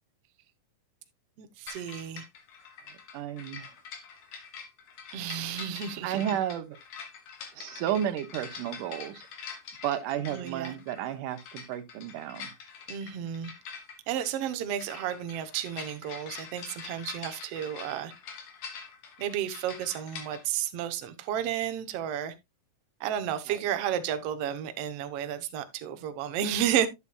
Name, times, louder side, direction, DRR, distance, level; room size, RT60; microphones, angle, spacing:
voice 1, 1.4-2.3 5.1-6.4 10.3-10.7 12.9-13.5 14.1-18.1 19.2-22.3 23.0-26.9, right 10 dB, 70° right, 1.6 m, -32 dB
sound 1, 1.7-20.4, left 6 dB, 75° left, 3.4 m, -45 dB
voice 2, 3.1-3.7 6.0-6.8 7.5-9.2 9.8-12.5 23.5-23.7, right 10 dB, 90° right, 2.3 m, -32 dB
11.0 x 8.1 x 2.3 m
omnidirectional pair, 3.7 m